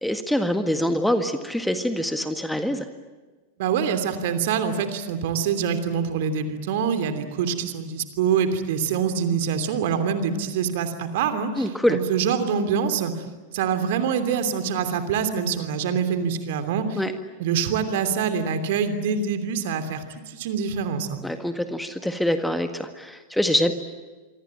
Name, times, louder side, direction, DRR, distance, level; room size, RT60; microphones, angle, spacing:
voice 1, 0.0-2.9 11.6-12.0 17.0-17.1 21.2-23.7, equal, ahead, 8 dB, 1.8 m, -24 dB
voice 2, 3.6-13.2 13.5-17.0 17.4-21.2, right 7 dB, 55° right, 9 dB, 3.0 m, -25 dB
27.5 x 24.0 x 9.0 m, 1.3 s
figure-of-eight pair, 90°, 0 cm